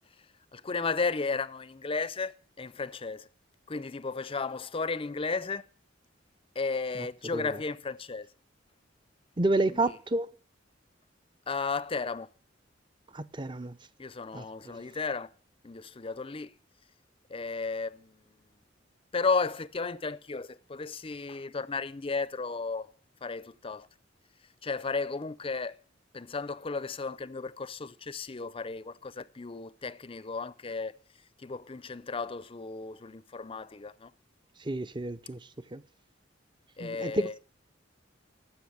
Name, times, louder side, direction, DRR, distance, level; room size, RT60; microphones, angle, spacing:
voice 1, 0.5-3.3 3.7-5.6 6.5-8.3 9.7-10.0 11.5-12.3 14.0-15.3 15.6-16.5 17.3-18.2 19.1-22.9 23.2-23.9 24.6-25.8 26.1-30.9 31.4-34.1 36.8-37.3, left 4 dB, 30° left, 0.6 m, -34 dB
voice 2, 9.4-10.3 13.1-13.8 14.3-14.8 34.6-35.4 35.7-35.8 36.8-37.4, right 2 dB, 25° right, 0.7 m, -30 dB
14.5 x 6.0 x 8.5 m
head